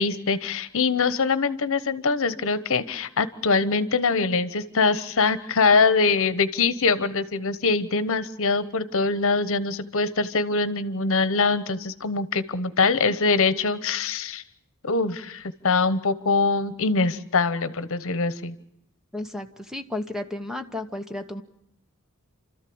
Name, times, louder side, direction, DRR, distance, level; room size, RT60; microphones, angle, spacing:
voice 1, 0.0-14.4 14.8-18.5, left 4 dB, 65° left, 14 dB, 1.1 m, -23 dB
voice 2, 19.1-21.4, left 2 dB, 5° right, 7 dB, 1.0 m, -33 dB
29.5 x 13.5 x 8.6 m, 0.81 s
head